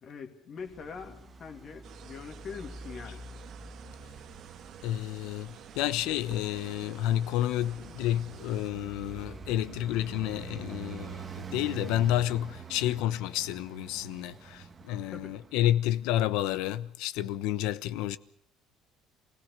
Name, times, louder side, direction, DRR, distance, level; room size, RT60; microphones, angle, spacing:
voice 1, 0.0-3.2 15.1-15.3, left 6 dB, 35° left, 2.5 m, -43 dB
Traffic noise roadway noise, 0.6-16.1, right 5 dB, 25° right, 1.6 m, -46 dB
sound 1, 1.8-8.7, right 10 dB, 45° right, 1.1 m, -51 dB
voice 2, 4.8-18.2, left 13 dB, 80° left, 1.0 m, -30 dB
27.5 x 17.0 x 6.7 m
cardioid pair, 160°, 0 cm